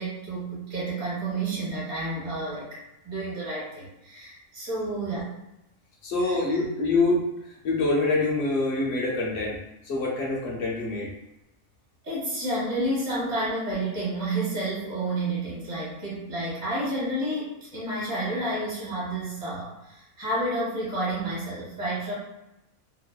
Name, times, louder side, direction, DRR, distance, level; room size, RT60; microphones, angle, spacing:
voice 1, 0.0-2.8 3.0-5.3 6.2-6.6 12.0-22.1, right 1 dB, 40° right, -10 dB, 1.1 m, -30 dB
voice 2, 6.0-7.2 7.6-9.6 9.9-11.1, left 3 dB, 60° left, -2 dB, 0.8 m, -25 dB
2.7 x 2.1 x 2.2 m, 0.90 s
omnidirectional pair, 1.4 m